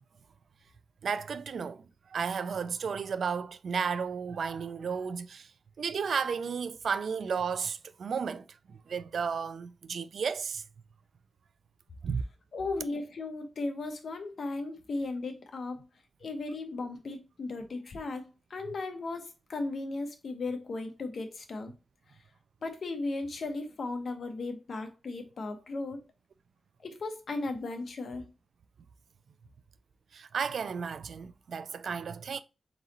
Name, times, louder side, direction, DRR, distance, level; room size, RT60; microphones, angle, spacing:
voice 1, 1.0-1.8 2.1-5.5 5.8-10.6 12.0-12.2 30.1-32.4, right 6 dB, 80° right, 0.3 m, -33 dB
voice 2, 12.5-15.8 16.2-21.7 22.6-26.0 26.8-28.2, left 3 dB, 65° left, 1.0 m, -36 dB
4.0 x 3.9 x 2.9 m
wide cardioid pair, 140°, 0 cm